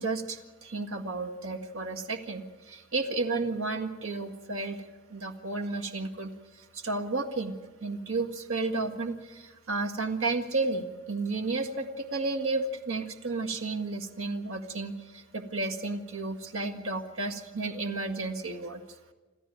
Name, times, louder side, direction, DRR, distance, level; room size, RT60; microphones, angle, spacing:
voice 1, 0.0-4.8 5.1-7.5 7.8-18.8, right 3 dB, 85° right, 6 dB, 1.8 m, -32 dB
27.0 x 14.0 x 9.1 m, 1.2 s
head